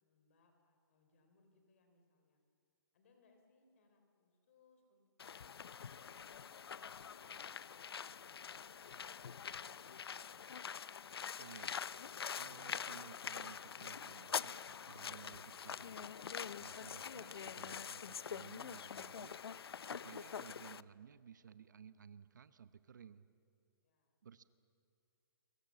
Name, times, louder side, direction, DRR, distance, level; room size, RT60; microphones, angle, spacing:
voice 1, 0.0-2.4 2.9-6.4 23.8-24.2, left 3 dB, 30° left, 5 dB, 3.4 m, -74 dB
sound 1, 5.2-20.8, left 7 dB, 80° left, 0.6 m, -45 dB
voice 2, 11.4-11.8 12.3-16.1 16.6-19.4 19.8-23.2 24.2-24.4, right 7 dB, 50° right, 13 dB, 0.8 m, -57 dB
30.0 x 22.0 x 7.5 m, 2.4 s
hypercardioid pair, 180°, 13 cm